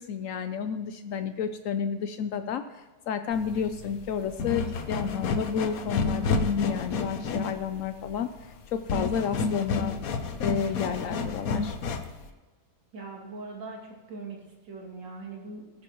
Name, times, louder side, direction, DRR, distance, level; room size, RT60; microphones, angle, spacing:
voice 1, 0.0-8.3 8.7-10.0 10.4-11.8, left 7 dB, 90° left, 9 dB, 0.7 m, -31 dB
sound 1, 3.3-12.3, left 4 dB, 55° left, 1.2 m, -30 dB
voice 2, 12.9-15.8, right 3 dB, 70° right, -2 dB, 3.2 m, -41 dB
19.0 x 9.6 x 3.1 m, 1.2 s
omnidirectional pair, 2.0 m